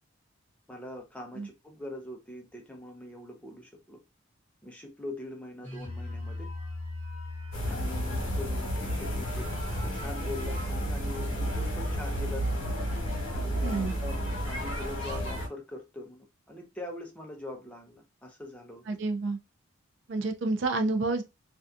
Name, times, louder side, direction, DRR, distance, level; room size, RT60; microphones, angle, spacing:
voice 1, 0.7-4.0 4.6-6.5 7.7-9.5 9.8-12.8 13.3-18.8, left 2 dB, 5° left, 0.5 m, -42 dB
sound 1, 5.6-15.4, left 1 dB, 25° right, 1.2 m, -40 dB
sound 2, 7.5-15.5, equal, 70° left, 1.0 m, -31 dB
voice 2, 13.6-13.9 18.9-19.4 20.1-21.2, right 3 dB, 60° right, 0.4 m, -29 dB
2.6 x 2.3 x 2.3 m
head